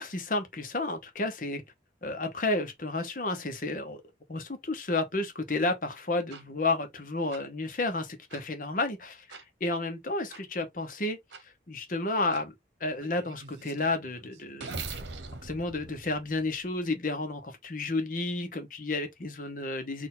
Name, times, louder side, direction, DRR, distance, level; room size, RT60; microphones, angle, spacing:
voice 1, 0.0-1.6 2.0-4.0 4.3-11.2 11.4-12.5 12.8-14.8 15.4-20.1, left 2 dB, 50° left, 1.1 m, -31 dB
sound 1, 6.3-6.4 7.3-7.4 8.3-8.4 9.3-9.4 10.3-10.4 11.3-11.4 12.3-12.4 13.0-16.9, right 4 dB, 85° right, 1.0 m, -43 dB
4.4 x 2.7 x 3.9 m
head